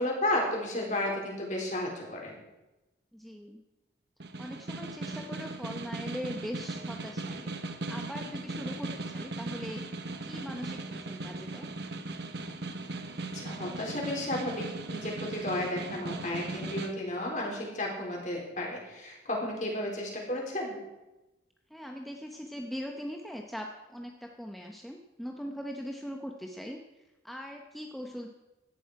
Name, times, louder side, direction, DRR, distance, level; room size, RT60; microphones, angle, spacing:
voice 1, 0.0-2.3 13.3-20.8, left 1 dB, 40° left, -1 dB, 4.1 m, -33 dB
voice 2, 3.1-3.6 4.4-7.6 7.9-9.8 10.2-11.7 19.6-19.7 21.7-26.8 27.2-28.3, equal, ahead, 1 dB, 0.8 m, -41 dB
Snare drum, 4.2-16.9, right 2 dB, 60° right, 1.1 m, -38 dB
17.0 x 12.0 x 4.8 m, 1.0 s
head